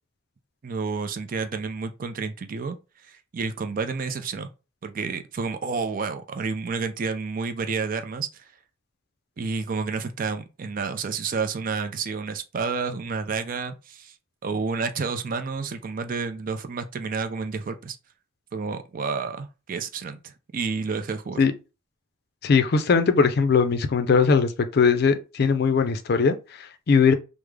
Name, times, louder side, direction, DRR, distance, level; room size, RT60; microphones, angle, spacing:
voice 1, 0.6-2.8 3.0-4.5 4.8-8.5 9.4-14.1 14.4-18.0 18.5-21.4, right 4 dB, 45° right, 0.4 m, -30 dB
voice 2, 22.4-27.1, left 5 dB, 55° left, 0.4 m, -20 dB
3.5 x 2.0 x 3.2 m
head